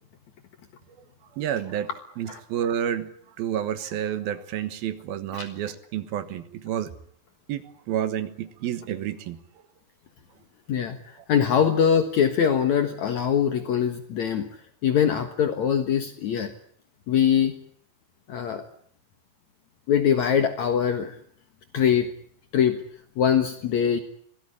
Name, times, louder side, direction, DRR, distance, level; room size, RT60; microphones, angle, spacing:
voice 1, 1.3-1.9 2.2-3.1 3.4-6.9 7.5-9.4, right 10 dB, 65° right, 11 dB, 2.6 m, -30 dB
voice 2, 10.7-14.5 14.8-16.5 17.1-17.6 18.3-18.6 19.9-21.1 21.7-22.1 22.5-22.8 23.2-24.0, left 8 dB, 75° left, 8 dB, 1.7 m, -22 dB
25.0 x 18.0 x 9.9 m, 0.62 s
omnidirectional pair, 5.7 m